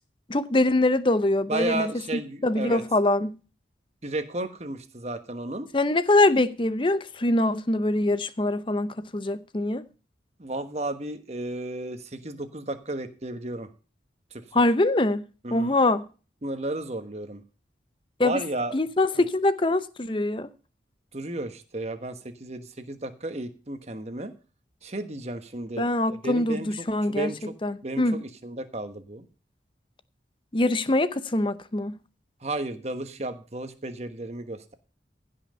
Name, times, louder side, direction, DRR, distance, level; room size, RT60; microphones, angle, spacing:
voice 1, 0.3-3.4 5.7-9.8 14.5-16.1 18.2-18.4 18.7-20.5 25.8-27.3 27.6-28.2 30.5-32.0, left 2 dB, 30° left, 0.7 m, -24 dB
voice 2, 1.5-2.8 4.0-5.7 10.4-13.7 14.3-14.4 15.4-15.7 16.4-17.4 18.2-18.7 21.1-24.3 24.8-26.7 27.1-27.5 27.8-29.2 32.4-34.7, right 2 dB, 40° right, 1.3 m, -33 dB
15.5 x 5.8 x 5.5 m
head